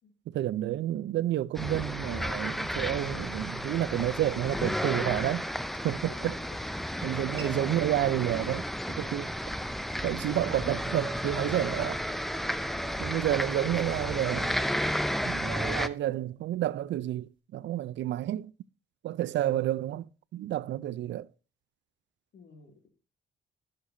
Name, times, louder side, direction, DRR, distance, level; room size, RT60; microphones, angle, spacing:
voice 1, 0.3-5.4 5.8-6.3 7.0-8.7 9.0-9.3 10.0-12.0 13.0-14.6 15.2-18.5 19.0-21.3, right 13 dB, 65° right, 0.5 m, -30 dB
sound 1, 1.3-17.4, right 4 dB, 25° right, 3.0 m, -58 dB
sound 2, 1.5-15.9, equal, ahead, 0.5 m, -33 dB
voice 2, 6.1-6.6 22.3-22.9, left 6 dB, 60° left, 2.4 m, -52 dB
12.5 x 6.5 x 2.7 m
cardioid pair, 90°, 20 cm